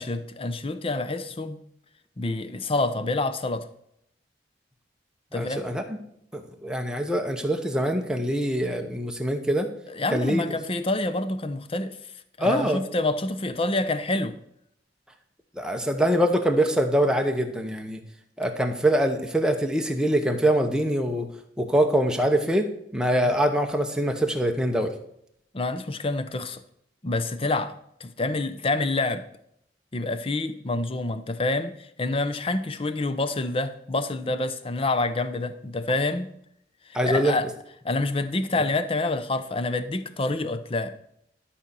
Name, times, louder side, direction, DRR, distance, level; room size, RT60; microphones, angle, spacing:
voice 1, 0.0-1.6 2.2-3.7 5.3-5.7 9.9-12.0 12.4-14.4 25.5-26.6 27.0-29.3 29.9-36.3 36.9-37.5 37.8-40.9, left 2 dB, 30° left, 12 dB, 0.6 m, -27 dB
voice 2, 5.4-6.0 6.3-9.7 10.1-10.4 12.4-12.8 15.6-18.0 18.4-21.3 21.6-24.9 36.9-37.3, right 1 dB, 5° right, 4 dB, 1.0 m, -24 dB
12.0 x 4.3 x 6.8 m, 0.73 s
head